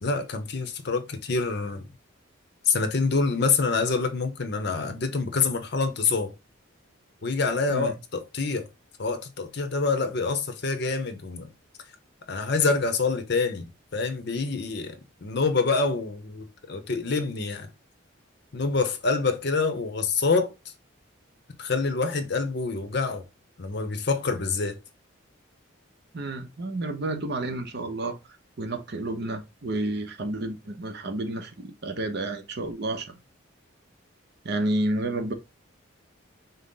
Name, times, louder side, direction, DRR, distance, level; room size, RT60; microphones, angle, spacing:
voice 1, 0.0-1.9 2.7-6.3 7.2-8.7 9.0-11.5 12.3-17.7 18.5-20.5 21.6-23.2 23.6-24.8, left 4 dB, 55° left, 0.7 m, -26 dB
voice 2, 26.1-28.2 28.6-33.2 34.4-35.3, right 2 dB, 50° right, 0.7 m, -30 dB
5.3 x 2.0 x 3.9 m
head